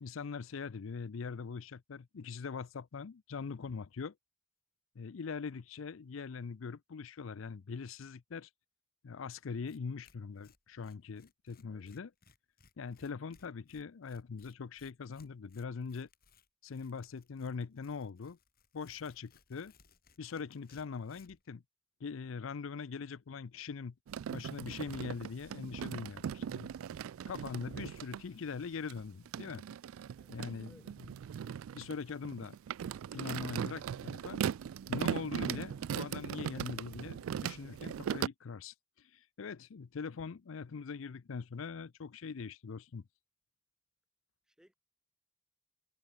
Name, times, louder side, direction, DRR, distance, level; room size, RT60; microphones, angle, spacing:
voice 1, 0.0-4.1 5.0-8.5 9.0-12.1 12.8-16.1 16.6-18.4 18.7-19.7 20.2-21.6 22.0-23.9 24.3-26.7 27.3-29.6 30.3-30.8 31.7-32.6 33.1-34.4 34.9-43.0, left 5 dB, 70° left, 0.5 m, -42 dB
Tearing, 9.3-9.4 9.7-9.8 10.0-21.5, left 5 dB, 50° left, 2.9 m, -66 dB
sound 1, 24.1-28.2 28.9-38.3, right 8 dB, 85° right, 0.3 m, -39 dB
voice 2, 30.1-31.0 44.5-44.7, equal, 5° right, 1.2 m, -64 dB
head